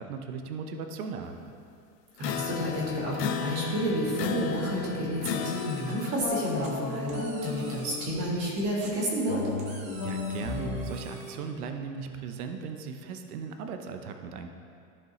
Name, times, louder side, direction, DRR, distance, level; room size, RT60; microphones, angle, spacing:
voice 1, 0.0-1.5 10.0-14.5, right 5 dB, 70° right, 6 dB, 0.8 m, -37 dB
sound 1, 2.2-6.4, left 8 dB, 90° left, 0.7 m, -35 dB
voice 2, 2.2-9.4, equal, 30° right, -5 dB, 2.1 m, -30 dB
sound 2, 5.4-6.1 6.6-8.0 8.8-11.3, right 2 dB, 15° right, 0.4 m, -49 dB
sound 3, 6.2-8.5 9.2-12.6, left 3 dB, 60° left, 1.5 m, -36 dB
14.0 x 5.1 x 3.0 m, 2.4 s
supercardioid pair, 155°, 47 cm